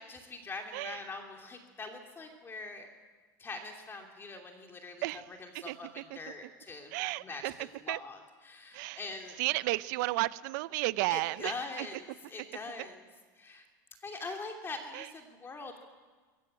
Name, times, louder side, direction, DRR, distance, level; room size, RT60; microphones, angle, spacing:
voice 1, 0.0-2.9 3.4-9.4 11.1-13.0 13.4-13.7 14.0-15.8, left 3 dB, 20° left, 3 dB, 2.9 m, -43 dB
voice 2, 6.9-7.5 7.9-8.0 8.7-9.0 9.4-11.9 14.9-15.1, right 20 dB, 70° right, 17 dB, 0.8 m, -32 dB
21.5 x 15.5 x 9.0 m, 1.4 s
supercardioid pair, 110°, 10 cm